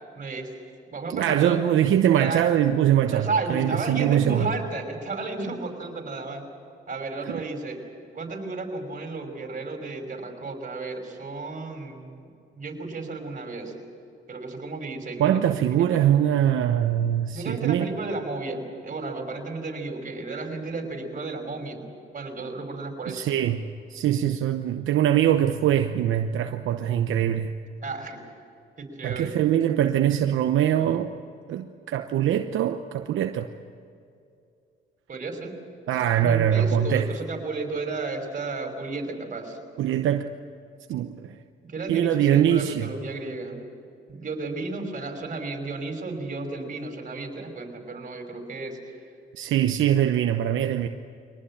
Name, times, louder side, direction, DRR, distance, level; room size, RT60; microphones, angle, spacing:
voice 1, 0.1-0.5 0.9-1.6 2.1-2.5 3.1-6.4 6.9-7.8 8.1-13.7 14.3-15.4 15.8-16.0 17.3-21.9 22.1-23.3 27.8-28.2 28.8-29.3 35.1-35.5 36.2-39.6 41.6-43.6 44.1-49.0, right 3 dB, 40° right, 4 dB, 5.6 m, -33 dB
voice 2, 1.1-4.5 7.3-7.4 15.2-17.9 23.1-23.6 23.9-27.5 29.0-31.1 31.5-33.5 35.9-37.1 39.8-40.3 40.9-41.3 41.9-42.9 49.3-50.9, right 10 dB, 75° right, 7 dB, 0.9 m, -23 dB
24.0 x 19.0 x 8.7 m, 2.5 s
supercardioid pair, 70°, 20 cm